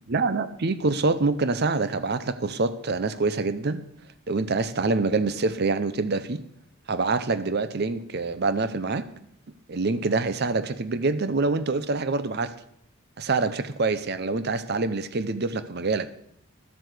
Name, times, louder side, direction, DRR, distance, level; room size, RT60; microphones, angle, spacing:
voice 1, 0.1-3.8 4.3-6.4 6.9-9.1 9.7-12.5 13.2-16.1, right 3 dB, 50° right, 13 dB, 0.7 m, -26 dB
12.0 x 8.0 x 6.6 m, 0.71 s
head